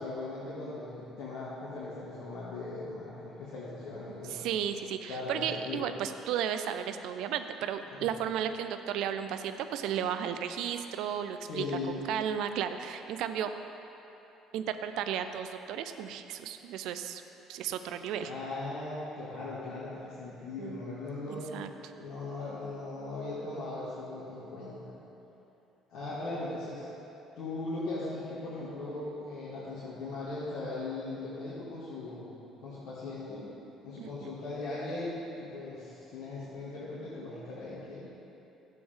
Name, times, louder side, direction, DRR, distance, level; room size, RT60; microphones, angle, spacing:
voice 1, 0.0-4.5 5.1-5.9 7.9-8.1 11.4-11.9 18.2-24.9 25.9-26.9 27.4-32.3 32.6-33.5 33.8-38.0, left 2 dB, 60° left, -10 dB, 2.0 m, -39 dB
voice 2, 4.3-13.5 14.5-17.2 17.5-18.3 20.6-20.8 21.3-21.7 34.0-34.3, right 9 dB, 65° right, 9 dB, 0.4 m, -34 dB
12.0 x 7.7 x 3.6 m, 3.0 s
figure-of-eight pair, 55°, 0 cm